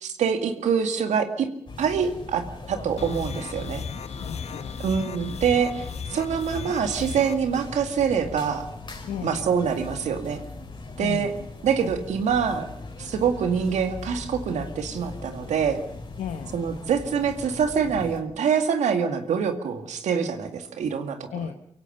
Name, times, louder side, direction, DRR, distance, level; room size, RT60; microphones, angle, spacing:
voice 1, 0.0-1.5 1.8-3.8 4.8-8.7 9.2-10.4 11.0-11.3 11.6-12.7 13.0-15.8 16.5-21.2, right 7 dB, 85° right, 7 dB, 2.1 m, -25 dB
sound 1, 1.7-18.2, left 3 dB, 45° left, 5.1 m, -40 dB
sound 2, 3.0-7.4, left 6 dB, 70° left, 1.1 m, -36 dB
voice 2, 4.2-4.8 9.0-9.4 11.0-11.4 16.2-16.6 21.3-21.5, left 8 dB, 90° left, 6 dB, 1.1 m, -34 dB
24.0 x 16.5 x 6.7 m, 0.76 s
supercardioid pair, 45°, 12 cm